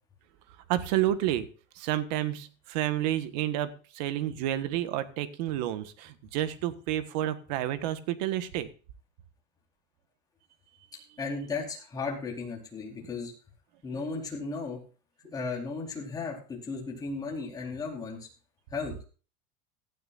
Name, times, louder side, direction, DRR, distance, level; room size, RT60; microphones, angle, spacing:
voice 1, 0.7-1.5 1.7-8.7, right 13 dB, 80° right, 11 dB, 1.6 m, -30 dB
voice 2, 11.2-13.3 13.8-14.8 15.3-18.3 18.7-18.9, left 4 dB, 20° left, -1 dB, 4.3 m, -35 dB
17.0 x 12.0 x 2.6 m, 0.37 s
cardioid pair, 160°, 21 cm